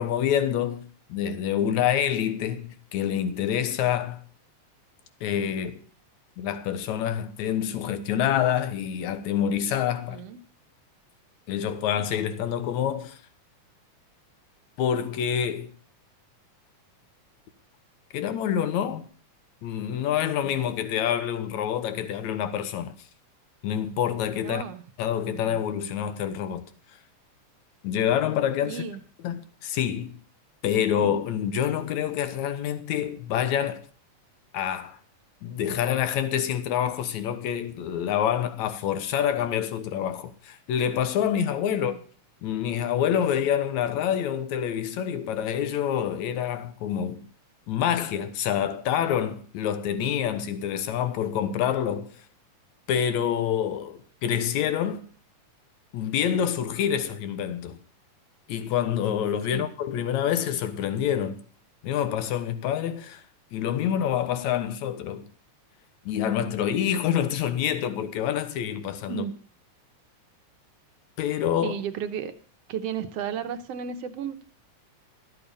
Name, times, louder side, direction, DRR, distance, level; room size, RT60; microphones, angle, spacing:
voice 1, 0.0-4.2 5.2-5.8 6.4-10.2 11.5-13.2 14.8-15.7 18.1-19.0 19.6-22.9 23.6-24.6 25.0-26.6 27.8-28.8 29.2-30.1 30.6-33.8 34.5-35.0 35.4-42.0 42.4-47.3 47.7-52.1 52.9-55.1 55.9-57.8 58.5-61.4 61.8-63.2 63.5-65.2 66.1-69.3 71.2-71.8, left 9 dB, 70° left, 2.3 m, -27 dB
voice 2, 10.1-10.4 20.3-20.6 24.4-24.8 25.3-25.6 28.6-29.0 41.7-42.0 59.5-59.7 69.1-69.4 71.6-72.3 72.7-74.5, right 8 dB, 70° right, 1.6 m, -34 dB
13.5 x 8.6 x 6.9 m
omnidirectional pair, 3.6 m